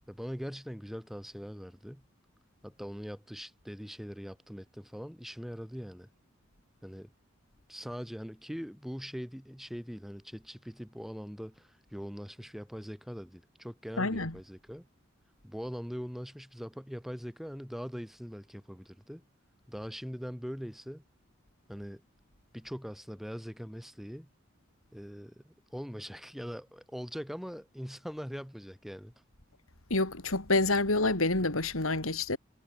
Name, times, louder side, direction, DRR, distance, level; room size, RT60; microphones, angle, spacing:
voice 1, 0.0-2.0 2.6-6.1 6.8-7.1 7.7-14.9 15.4-19.2 19.7-21.0 21.7-22.0 22.5-24.3 24.9-29.1, equal, ahead, 3.9 m, -42 dB
voice 2, 14.0-14.3 29.9-32.4, left 2 dB, 85° left, 3.4 m, -28 dB
head